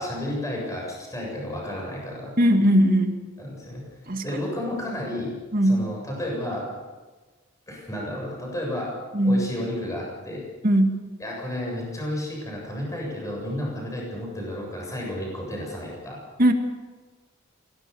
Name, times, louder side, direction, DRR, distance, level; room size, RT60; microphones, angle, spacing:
voice 1, 0.0-2.3 3.4-3.8 4.2-5.4 5.6-6.6 7.7-8.9 9.2-10.4 11.2-16.2, left 1 dB, 15° left, -2 dB, 7.4 m, -32 dB
voice 2, 2.4-3.2 4.1-4.4 5.5-5.8 9.1-9.4 10.6-11.0 16.4-16.5, equal, 45° right, 5 dB, 2.1 m, -19 dB
23.5 x 17.5 x 7.0 m, 1.3 s
head